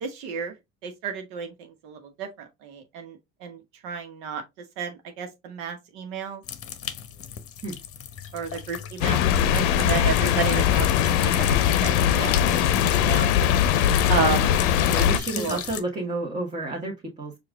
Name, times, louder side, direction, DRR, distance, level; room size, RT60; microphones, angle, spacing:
voice 1, 0.0-0.5 0.8-4.4 4.8-6.4 8.3-13.3 14.1-14.5 15.0-15.1 15.4-15.6, right 6 dB, 65° right, 1.1 m, -32 dB
sound 1, 6.4-15.8, left 9 dB, 40° left, 0.8 m, -35 dB
sound 2, 9.0-15.2, left 10 dB, 65° left, 0.7 m, -21 dB
voice 2, 9.8-10.1 14.0-14.2 14.9-17.4, right 2 dB, 20° right, 1.4 m, -31 dB
4.7 x 2.5 x 3.5 m
hypercardioid pair, 80°, 35 cm